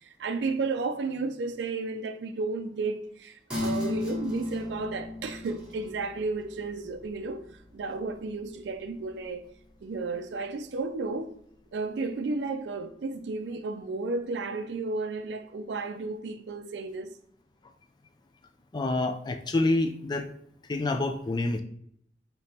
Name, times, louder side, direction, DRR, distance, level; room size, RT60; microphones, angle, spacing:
voice 1, 0.0-7.5 7.7-9.4 9.8-11.3 11.7-17.2, right 3 dB, 75° right, 0.4 m, -33 dB
sound 1, 3.5-10.5 10.9-11.0, left 2 dB, 5° right, 1.1 m, -37 dB
voice 2, 18.7-20.3 20.7-21.6, left 2 dB, 25° left, 0.3 m, -27 dB
5.2 x 2.9 x 2.8 m
head